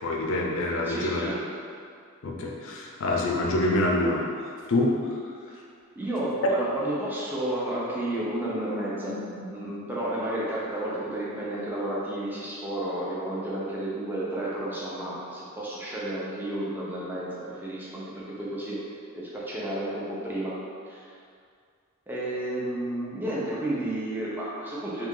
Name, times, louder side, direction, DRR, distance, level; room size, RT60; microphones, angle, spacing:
voice 1, 0.0-1.3 2.2-4.3 4.7-5.2 8.6-8.8 9.1-9.4, left 1 dB, 65° left, -1 dB, 0.4 m, -26 dB
voice 2, 0.9-1.4 5.5-5.6 6.0-9.2 9.5-18.8 19.1-20.5 20.9-21.1 22.1-25.1, right 1 dB, 10° right, -7 dB, 0.5 m, -31 dB
2.7 x 2.5 x 3.6 m, 2.2 s
head